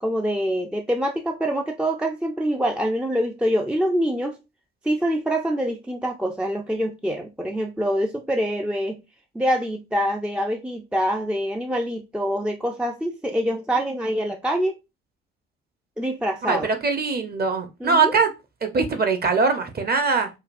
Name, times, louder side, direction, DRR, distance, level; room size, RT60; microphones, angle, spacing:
voice 1, 0.0-4.4 4.8-9.0 9.3-14.7 16.0-16.7 17.8-18.2, equal, 5° right, 0.5 m, -25 dB
voice 2, 16.5-18.3 18.6-20.3, right 4 dB, 30° right, 0.9 m, -22 dB
5.0 x 2.3 x 2.5 m
figure-of-eight pair, 50°, 31 cm